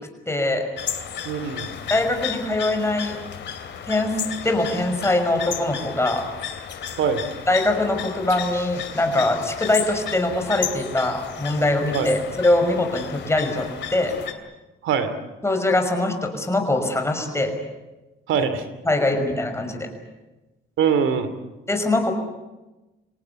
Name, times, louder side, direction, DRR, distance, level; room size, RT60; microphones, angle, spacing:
voice 1, 0.3-0.6 1.9-3.2 3.9-4.2 4.4-6.2 7.5-14.1 15.4-17.5 18.9-19.9 21.7-22.1, left 2 dB, 15° left, 5 dB, 6.0 m, -22 dB
sound 1, 0.8-14.3, left 8 dB, 65° left, 2.9 m, -33 dB
voice 2, 1.2-1.7 7.0-7.2 11.9-12.1 14.8-15.1 18.3-18.7 20.8-21.3, right 7 dB, 80° right, 11 dB, 2.9 m, -22 dB
27.0 x 18.0 x 9.6 m, 1.1 s
cardioid pair, 90°, 20 cm